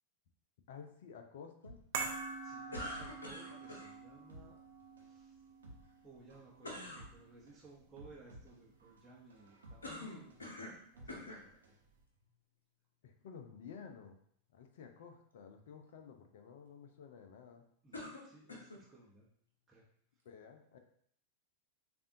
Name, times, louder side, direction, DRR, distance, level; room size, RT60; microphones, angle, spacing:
voice 1, 0.7-1.8 13.0-14.2 14.5-17.7 20.2-20.8, left 6 dB, 55° left, 5 dB, 0.6 m, -53 dB
sound 1, 1.6-11.9 12.1-12.2, right 1 dB, 70° right, 1.0 m, -58 dB
sound 2, 1.9-8.4 8.6-8.8, right 5 dB, 50° right, 0.7 m, -46 dB
voice 2, 2.4-4.6 5.0-5.4 6.0-10.4 10.9-11.8 17.8-19.3 19.7-19.9, right 3 dB, 10° right, -6 dB, 1.0 m, -59 dB
sound 3, 2.7-3.9 6.6-7.0 9.8-10.8 11.1-11.4 12.2-12.3 17.9-18.8, left 1 dB, 75° left, 1.0 m, -45 dB
6.7 x 2.6 x 2.7 m, 0.65 s
figure-of-eight pair, 90°, 0 cm